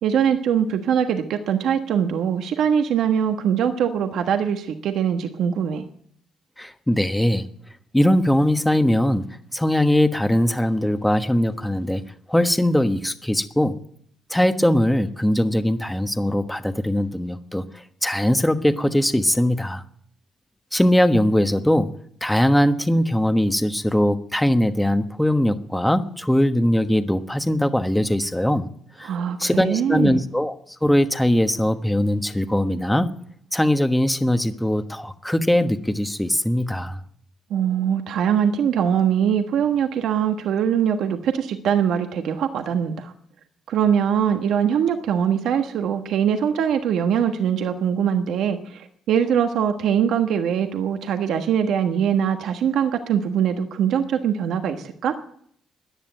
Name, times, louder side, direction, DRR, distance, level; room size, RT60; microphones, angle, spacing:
voice 1, 0.0-5.9 29.0-30.2 37.5-43.1 43.7-55.1, right 8 dB, 75° right, 6 dB, 1.3 m, -22 dB
voice 2, 6.6-7.5 7.9-9.2 9.5-12.0 12.3-13.8 14.3-19.8 20.7-21.9 22.2-28.7 29.0-29.1 29.4-30.5 30.8-33.1 33.5-37.0, left 1 dB, 5° left, 9 dB, 1.2 m, -20 dB
15.0 x 10.0 x 9.0 m, 0.65 s
cardioid pair, 90°, 0 cm